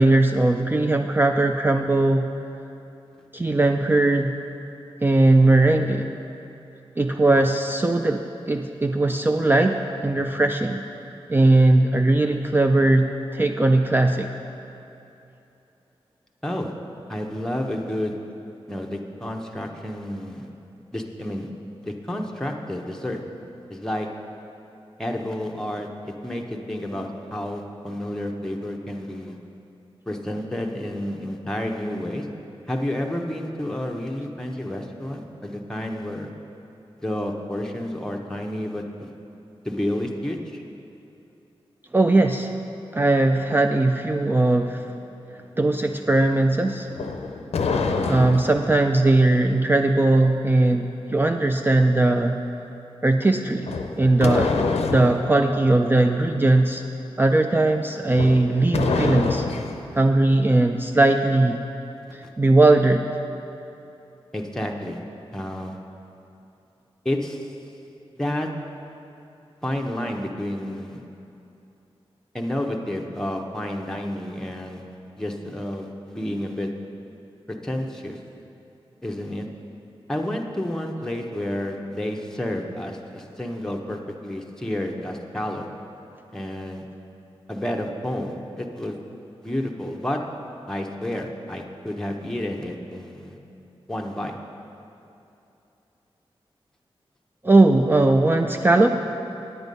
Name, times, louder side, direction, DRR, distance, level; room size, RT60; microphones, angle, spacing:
voice 1, 0.0-2.3 3.3-4.3 5.0-6.1 7.0-10.8 11.3-14.3 41.9-42.5 42.9-44.9 45.6-46.9 48.1-52.4 53.0-53.7 54.0-54.5 54.9-56.8 57.2-59.5 59.9-61.6 62.1-63.1 97.4-99.0, right 2 dB, 20° right, 4 dB, 0.4 m, -19 dB
voice 2, 16.4-16.7 17.1-18.2 18.7-20.5 20.9-21.5 21.8-23.2 23.7-24.1 25.0-29.4 30.1-32.3 32.7-36.3 37.0-39.1 39.6-40.6 64.3-65.0 65.3-65.8 67.0-67.6 68.2-68.5 69.6-71.0 72.3-74.9 75.2-76.7 77.5-78.2 79.0-79.5 80.1-85.7 86.3-86.8 87.5-89.0 89.4-90.2 90.7-93.4 93.9-94.4, left 1 dB, 5° left, 1 dB, 0.8 m, -30 dB
sound 1, 46.9-48.7 53.6-55.2 58.1-59.8, left 4 dB, 85° left, 0.6 m, -26 dB
9.1 x 8.0 x 5.3 m, 2.8 s
cardioid pair, 70°, 10 cm